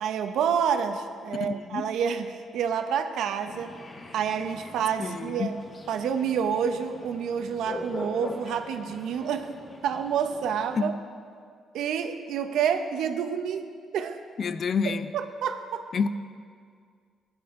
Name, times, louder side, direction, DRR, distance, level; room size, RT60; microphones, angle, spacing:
voice 1, 0.0-3.7 4.1-5.6 5.9-9.5 9.8-10.9 11.7-13.6 13.9-14.2 15.1-15.9, right 7 dB, 80° right, 8 dB, 0.8 m, -28 dB
voice 2, 1.4-1.8 5.0-5.5 10.7-10.9 14.4-15.1 15.9-16.1, left 5 dB, 55° left, 11 dB, 0.5 m, -28 dB
sound 1, 3.5-10.8, left 2 dB, 30° left, 1.1 m, -41 dB
16.0 x 9.8 x 3.7 m, 2.1 s
cardioid pair, 90°, 0 cm